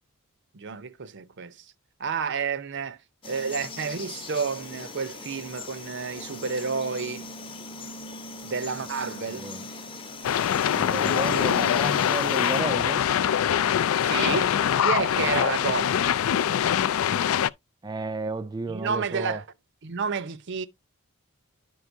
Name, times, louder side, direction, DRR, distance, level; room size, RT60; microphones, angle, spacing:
voice 1, 0.5-1.7 2.0-3.0 3.2-7.3 8.4-9.5 14.0-16.2 18.7-19.5 19.8-20.7, right 5 dB, 55° right, 0.6 m, -30 dB
Frog, 3.2-12.6, left 3 dB, 25° left, 0.8 m, -40 dB
voice 2, 9.3-9.6 10.8-13.0 17.8-19.4, right 2 dB, 20° right, 0.3 m, -32 dB
sound 1, 10.2-17.5, left 9 dB, 65° left, 0.3 m, -23 dB
11.5 x 4.6 x 2.6 m
head